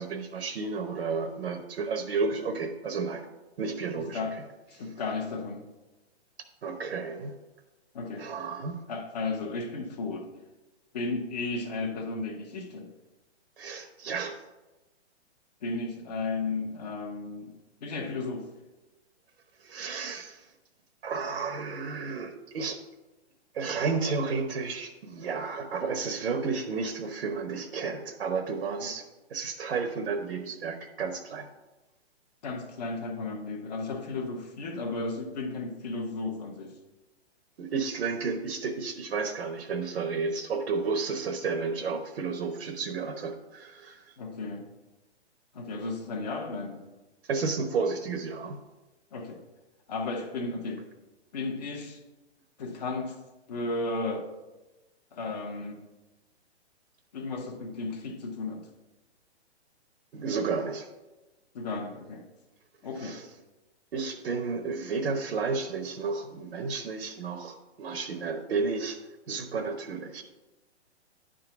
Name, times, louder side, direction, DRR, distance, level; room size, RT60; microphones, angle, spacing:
voice 1, 0.0-3.3 3.6-4.2 6.6-7.3 8.2-8.8 13.6-14.4 19.6-20.5 21.0-22.8 23.5-29.0 29.3-31.5 37.6-44.1 47.3-48.6 60.1-60.9 63.0-63.3 63.9-69.0 69.3-70.2, right 4 dB, 65° right, 5 dB, 1.0 m, -32 dB
voice 2, 3.9-4.3 4.7-5.6 7.9-8.2 8.9-10.3 10.9-12.9 15.6-17.5 17.8-18.5 28.8-28.9 32.4-36.7 44.2-44.6 45.5-46.8 49.1-49.4 49.9-50.8 51.3-52.0 52.6-53.1 53.5-54.3 55.1-55.8 57.1-58.6 61.5-62.2 62.8-63.2, left 3 dB, 35° left, 4 dB, 1.1 m, -34 dB
10.0 x 3.8 x 5.9 m, 1.1 s
hypercardioid pair, 170°, 34 cm